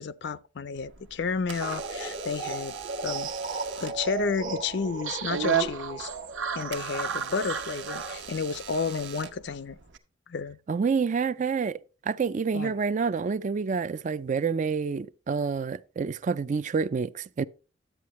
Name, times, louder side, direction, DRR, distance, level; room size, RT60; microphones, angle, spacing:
voice 1, 0.0-2.8 3.0-3.3 3.8-6.1 6.5-9.8 10.3-10.6 12.5-12.7, left 5 dB, 60° left, 0.5 m, -31 dB
Door / Alarm, 0.7-10.0, right 7 dB, 65° right, 1.0 m, -37 dB
sound 1, 1.6-8.2, right 5 dB, 85° right, 1.3 m, -34 dB
voice 2, 10.7-17.4, right 5 dB, 40° right, 0.3 m, -28 dB
11.5 x 8.4 x 3.1 m
head